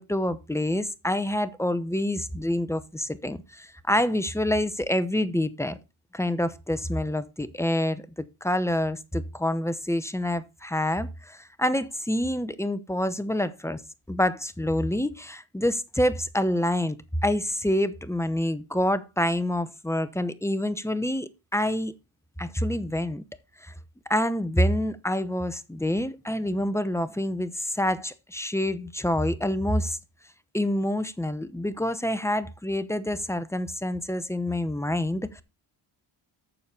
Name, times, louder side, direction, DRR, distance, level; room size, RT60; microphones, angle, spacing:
voice 1, 0.0-5.8 6.1-8.0 8.4-13.8 14.1-17.0 17.2-21.9 22.4-23.2 23.6-23.7 24.1-30.0 30.5-35.4, left 1 dB, 5° left, 0.8 m, -27 dB
7.0 x 6.7 x 5.5 m
cardioid pair, 90°, 48 cm